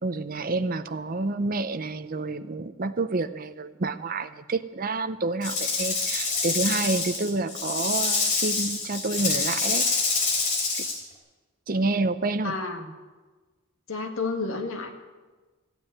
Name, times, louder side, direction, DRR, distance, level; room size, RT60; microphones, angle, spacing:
voice 1, 0.0-9.9 11.7-12.6, right 3 dB, 40° right, 10 dB, 0.6 m, -28 dB
Rattle / Rattle (instrument), 5.4-11.0, left 4 dB, 40° left, 3.3 m, -26 dB
voice 2, 12.4-12.9 13.9-14.9, left 3 dB, 70° left, 4 dB, 1.8 m, -30 dB
14.5 x 9.2 x 9.0 m, 1.3 s
head